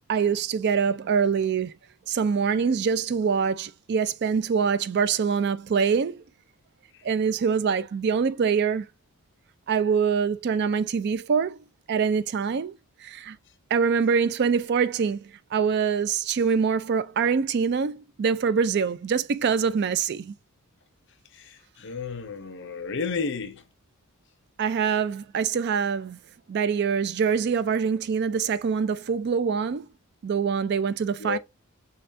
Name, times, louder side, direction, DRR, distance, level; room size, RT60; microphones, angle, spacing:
voice 1, 0.1-1.7 2.1-6.2 7.0-8.9 9.7-11.6 11.9-12.7 13.0-13.4 13.7-15.2 15.5-20.3 24.6-26.2 26.5-29.9 30.2-31.4, right 6 dB, 50° right, 0.3 m, -24 dB
voice 2, 21.3-23.6 31.2-31.4, left 5 dB, 55° left, 0.6 m, -32 dB
6.6 x 2.3 x 2.6 m
head